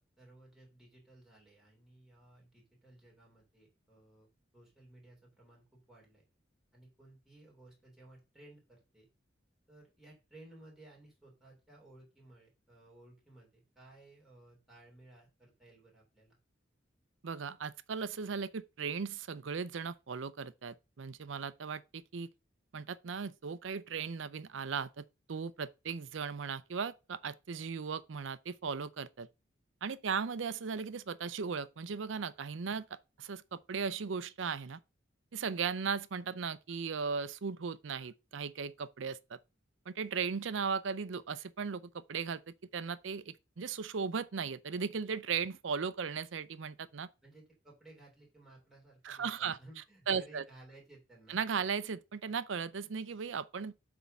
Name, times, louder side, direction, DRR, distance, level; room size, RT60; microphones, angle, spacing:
voice 1, 0.0-4.3 4.5-6.3 6.7-9.1 9.7-16.4 47.2-51.4, right 2 dB, ahead, 3.1 m, -58 dB
voice 2, 17.2-22.3 22.7-29.3 29.8-32.9 33.2-34.8 35.3-39.4 39.9-47.1 49.0-49.6 50.1-50.4 51.3-53.7, right 6 dB, 75° right, 0.5 m, -37 dB
8.2 x 3.6 x 5.3 m
head